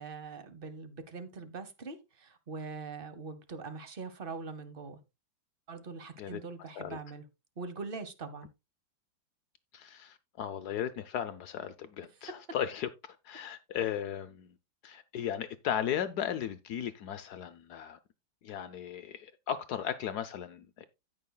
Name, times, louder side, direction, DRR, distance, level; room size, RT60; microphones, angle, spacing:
voice 1, 0.0-5.0 5.7-7.2 7.6-8.5, right 4 dB, 40° right, 0.9 m, -42 dB
voice 2, 9.7-12.9 13.2-14.5 14.8-18.0 18.4-20.8, left 9 dB, 70° left, 1.0 m, -36 dB
16.5 x 5.6 x 2.2 m
omnidirectional pair, 2.1 m